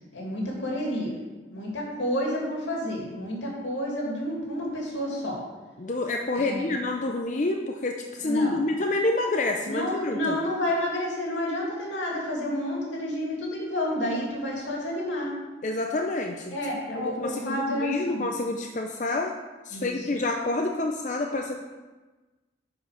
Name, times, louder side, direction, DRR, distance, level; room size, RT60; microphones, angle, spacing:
voice 1, 0.1-1.1 1.5-5.4 6.3-6.7 8.2-8.6 9.7-15.3 16.5-18.2 19.7-20.1, left 1 dB, 85° left, -2 dB, 2.4 m, -30 dB
voice 2, 5.8-10.4 15.6-16.5 16.9-19.3 19.6-21.6, left 2 dB, 40° left, 2 dB, 0.5 m, -28 dB
9.4 x 4.8 x 5.7 m, 1.2 s
head